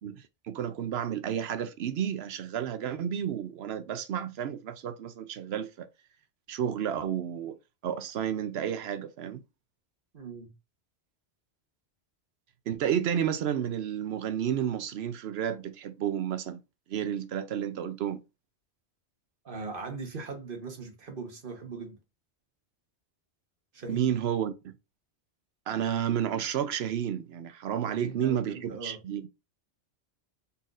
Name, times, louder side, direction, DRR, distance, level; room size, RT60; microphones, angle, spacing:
voice 1, 0.0-5.9 6.5-7.6 7.8-9.4 12.7-16.6 16.9-18.2 23.9-24.7 25.7-29.3, right 9 dB, 75° right, 0.8 m, -31 dB
voice 2, 10.1-10.5 19.4-22.0 23.7-24.1 27.9-29.0, right 4 dB, 55° right, 1.2 m, -39 dB
4.2 x 3.9 x 2.4 m
omnidirectional pair, 1.1 m